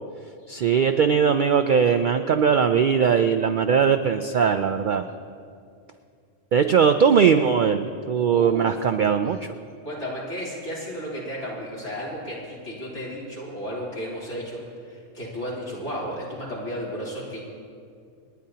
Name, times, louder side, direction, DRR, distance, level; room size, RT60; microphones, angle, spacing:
voice 1, 0.5-5.0 6.5-9.4, right 7 dB, 65° right, 7 dB, 0.5 m, -20 dB
voice 2, 8.3-8.8 9.8-17.4, equal, 70° left, -7 dB, 3.7 m, -33 dB
28.0 x 10.5 x 2.8 m, 2.3 s
omnidirectional pair, 1.3 m